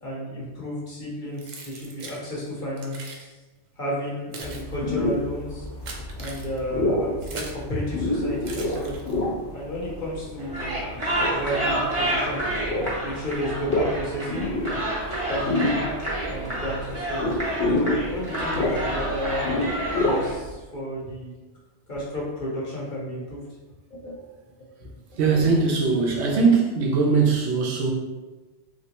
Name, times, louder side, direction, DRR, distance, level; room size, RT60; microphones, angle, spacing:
voice 1, 0.0-3.3 3.8-5.7 6.2-9.0 9.5-10.8 11.2-12.4 13.0-14.5 15.3-15.9 16.3-17.3 17.7-19.5 20.0-21.3 21.9-23.4 23.9-24.1 24.8-24.9, equal, 50° left, -5 dB, 1.0 m, -32 dB
Keys jangling, 1.4-2.2 2.8-3.2 4.0-7.7 8.4-9.3, right 3 dB, 60° right, 0.5 m, -40 dB
sound 1, 4.4-20.5, left 2 dB, 70° left, 1.3 m, -29 dB
sound 2, 10.4-20.3, right 1 dB, 30° right, 0.8 m, -29 dB
voice 2, 25.2-27.9, right 4 dB, 75° right, 0 dB, 0.9 m, -20 dB
3.1 x 2.9 x 2.9 m, 1.2 s
omnidirectional pair, 1.2 m